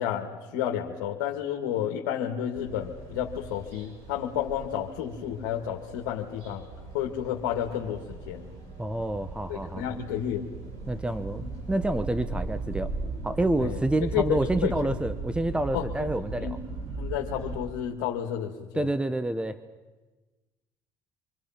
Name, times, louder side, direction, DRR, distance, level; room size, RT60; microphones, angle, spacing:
voice 1, 0.0-6.7 6.9-8.5 9.5-10.5 13.6-13.8 14.1-14.8 15.7-16.6 17.0-18.9, left 10 dB, 85° left, 0 dB, 2.0 m, -31 dB
sound 1, 2.5-17.6, right 3 dB, 80° right, 5.4 m, -38 dB
voice 2, 8.8-9.9 10.9-12.9 13.2-16.6 18.7-19.6, right 1 dB, 10° right, 11 dB, 1.1 m, -28 dB
26.0 x 23.5 x 5.9 m, 1.2 s
supercardioid pair, 80°, 10 cm